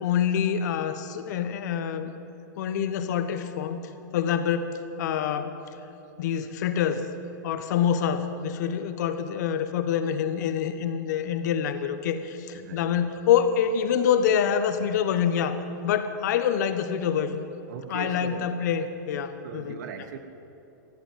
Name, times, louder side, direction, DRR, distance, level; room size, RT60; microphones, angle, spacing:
voice 1, 0.0-2.1 2.6-3.8 4.1-5.5 6.2-7.1 7.4-15.6 15.8-17.4 17.9-19.8, left 8 dB, 60° left, 9 dB, 1.1 m, -26 dB
voice 2, 12.5-12.9 17.7-18.5 19.4-20.2, right 8 dB, 65° right, 9 dB, 1.3 m, -39 dB
15.5 x 8.1 x 9.3 m, 2.8 s
hypercardioid pair, 135°, 10 cm